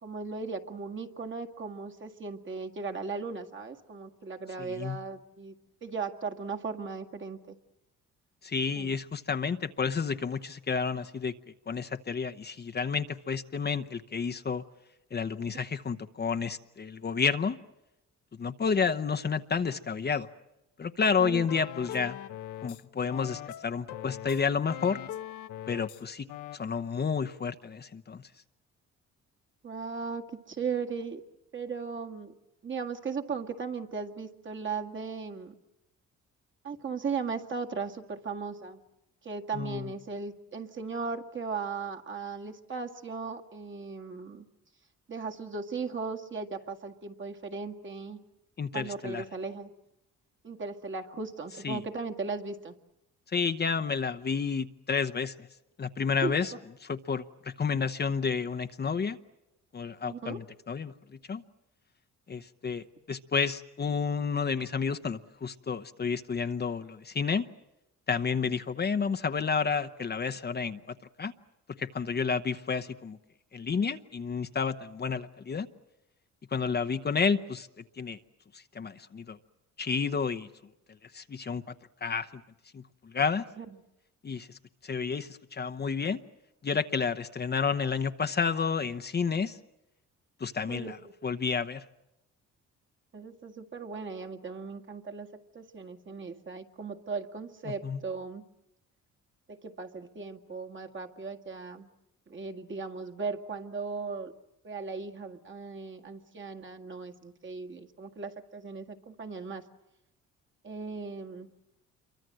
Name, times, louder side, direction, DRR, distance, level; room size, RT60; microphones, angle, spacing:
voice 1, 0.0-5.5 5.8-7.6 8.7-8.9 21.2-21.5 29.6-31.2 31.5-32.3 32.6-35.5 36.6-38.8 39.2-44.5 45.1-48.2 48.7-49.7 50.4-52.8 56.2-56.3 60.0-60.4 83.6-83.7 90.7-90.9 93.1-95.3 95.5-98.4 99.5-101.9 102.3-104.3 104.6-109.6 110.6-111.5, right 4 dB, 40° right, 3 dB, 1.9 m, -37 dB
voice 2, 4.6-5.0 8.4-11.3 11.7-14.6 15.1-17.6 18.4-20.3 20.8-22.2 22.6-25.0 25.7-26.3 26.5-28.3 39.5-39.9 48.6-49.2 51.6-51.8 53.3-55.5 55.8-56.5 56.8-59.2 59.7-61.4 62.3-67.5 68.1-70.8 71.2-71.3 71.8-73.2 73.5-75.7 76.5-77.7 78.0-78.2 78.5-79.4 79.8-80.5 81.0-81.7 82.0-82.4 82.7-83.4 84.2-86.2 86.6-89.6 90.4-91.0 91.2-91.8 97.8-98.0, left 5 dB, 35° left, 8 dB, 0.9 m, -30 dB
sound 1, 21.5-22.8 23.1-26.0 26.3-26.6, left 12 dB, 75° left, 1.0 m, -41 dB
27.5 x 23.5 x 7.7 m, 0.89 s
cardioid pair, 90°, 30 cm